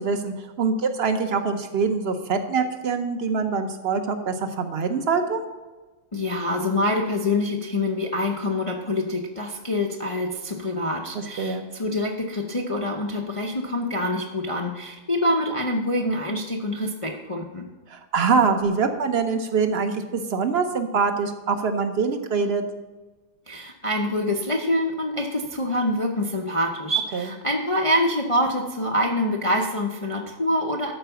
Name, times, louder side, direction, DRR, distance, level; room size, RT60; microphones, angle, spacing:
voice 1, 0.0-5.4 11.1-11.6 17.9-22.6 27.1-27.3, right 5 dB, 45° right, 7 dB, 0.9 m, -24 dB
voice 2, 6.1-17.7 23.5-30.9, left 1 dB, 35° left, 1 dB, 0.5 m, -25 dB
12.5 x 4.7 x 7.0 m, 1.2 s
omnidirectional pair, 1.8 m